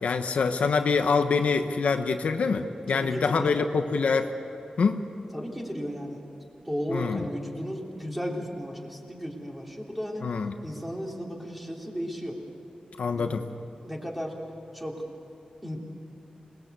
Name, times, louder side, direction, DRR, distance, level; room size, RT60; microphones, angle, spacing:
voice 1, 0.0-4.3 4.8-5.0 6.9-7.2 10.2-10.6 13.0-13.4, left 5 dB, 70° left, 6 dB, 1.1 m, -25 dB
voice 2, 2.9-3.7 5.3-6.2 6.7-10.2 10.6-12.4 13.1-13.3 13.8-14.4 14.7-15.0 15.6-15.8, equal, 5° right, -1 dB, 3.4 m, -34 dB
27.0 x 20.5 x 8.3 m, 2.8 s
wide cardioid pair, 170°, 2 cm